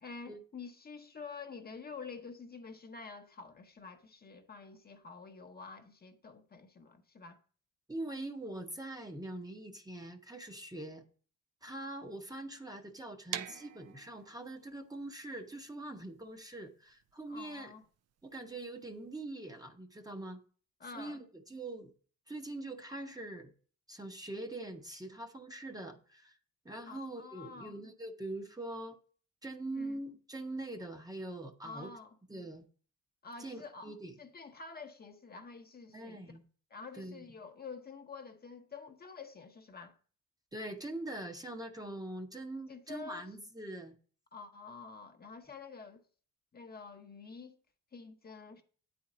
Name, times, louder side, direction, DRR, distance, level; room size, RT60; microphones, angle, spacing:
voice 1, 0.0-7.4 17.3-17.8 20.8-21.2 26.9-27.8 29.8-30.0 31.6-32.1 33.2-33.9 34.2-36.2 36.7-39.9 42.7-43.3 44.3-46.0 46.5-47.6 47.9-48.6, left 4 dB, 30° left, 0.8 m, -48 dB
voice 2, 7.9-11.0 11.6-17.7 18.2-20.4 20.9-21.9 22.3-23.5 23.9-26.4 26.6-29.0 29.4-31.9 32.3-32.6 33.4-34.1 35.9-36.4 37.0-37.3 40.5-43.9, right 2 dB, 10° right, 0.9 m, -43 dB
sound 1, 13.3-19.1, right 10 dB, 55° right, 0.5 m, -46 dB
8.6 x 4.3 x 5.0 m
cardioid pair, 90°, 30 cm